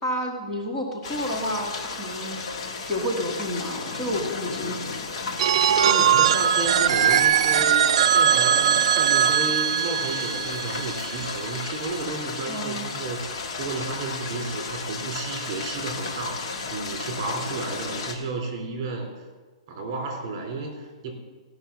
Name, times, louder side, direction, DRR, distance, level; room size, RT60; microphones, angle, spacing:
voice 1, 0.0-4.8 12.5-12.9, equal, 15° left, -3 dB, 1.7 m, -30 dB
sound 1, 1.0-18.1, left 4 dB, 50° left, 1.7 m, -34 dB
Telephone, 5.4-11.2, right 9 dB, 65° right, 0.4 m, -20 dB
voice 2, 5.6-13.3 13.6-19.1 19.7-21.1, right 3 dB, 35° right, 2 dB, 3.3 m, -32 dB
16.5 x 6.1 x 7.0 m, 1.4 s
hypercardioid pair, 155°, 3 cm